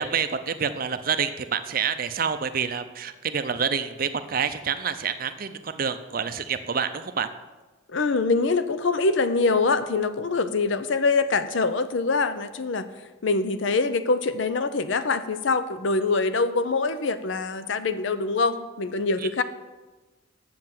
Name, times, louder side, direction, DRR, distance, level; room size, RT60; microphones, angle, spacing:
voice 1, 0.0-7.3, right 6 dB, 45° right, 10 dB, 0.5 m, -27 dB
voice 2, 7.9-12.9 13.2-19.4, left 3 dB, 65° left, 12 dB, 0.6 m, -24 dB
7.7 x 7.1 x 7.5 m, 1.2 s
head